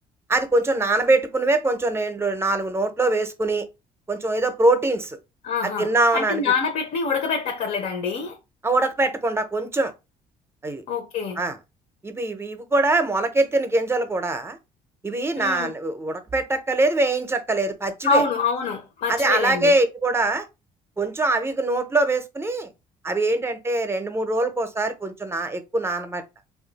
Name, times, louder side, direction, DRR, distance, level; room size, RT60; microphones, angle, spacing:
voice 1, 0.3-3.7 4.1-5.2 5.6-6.4 8.6-9.9 10.6-10.8 11.4-11.6 12.0-14.6 15.0-18.2 19.1-20.5 21.0-22.7 23.0-26.2, right 2 dB, 15° right, 0.5 m, -23 dB
voice 2, 5.4-8.4 10.9-11.4 15.4-15.7 18.0-19.7, left 4 dB, 65° left, 0.7 m, -25 dB
2.6 x 2.3 x 3.9 m
cardioid pair, 110°, 15 cm